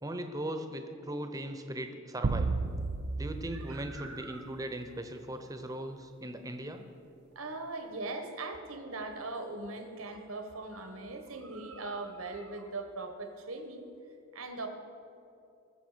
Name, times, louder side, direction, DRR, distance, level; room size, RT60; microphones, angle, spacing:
voice 1, 0.0-2.5 3.2-6.8, right 1 dB, 15° right, 6 dB, 0.8 m, -38 dB
sound 1, 2.2-4.8, right 3 dB, 50° right, 0.5 m, -34 dB
voice 2, 3.5-4.5 7.3-13.8 14.3-14.7, right 2 dB, 85° right, 6 dB, 1.4 m, -40 dB
20.5 x 7.0 x 5.1 m, 2.7 s
head